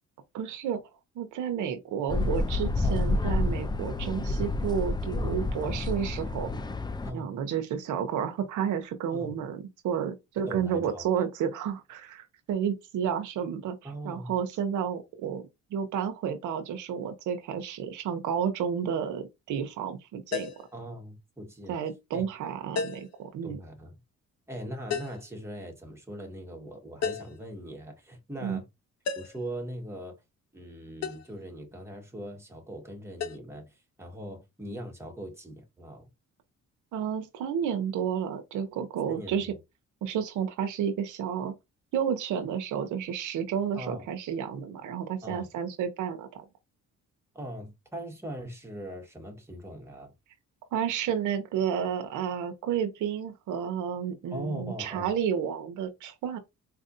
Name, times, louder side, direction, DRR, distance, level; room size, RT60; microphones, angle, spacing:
voice 1, 0.3-0.8 1.2-6.5 7.1-15.4 15.7-20.5 21.7-23.6 28.4-28.6 36.9-39.5 40.0-41.5 41.9-46.4 50.7-56.4, right 8 dB, 85° right, 0.8 m, -31 dB
sound 1, 2.1-7.1, left 2 dB, 15° left, 0.4 m, -29 dB
voice 2, 10.5-11.1 13.8-14.4 20.7-21.8 22.1-22.5 23.4-23.9 24.5-28.6 29.1-30.1 30.5-36.1 39.1-39.5 43.7-44.0 45.2-45.5 47.3-50.1 54.3-55.1, right 1 dB, 10° right, 1.5 m, -40 dB
sound 2, 20.3-20.7 22.8-23.2 24.9-25.3 27.0-27.4 29.0-29.5 31.0-31.3 33.2-33.4, left 6 dB, 60° left, 0.8 m, -33 dB
4.2 x 2.5 x 2.6 m
cardioid pair, 90°, 30 cm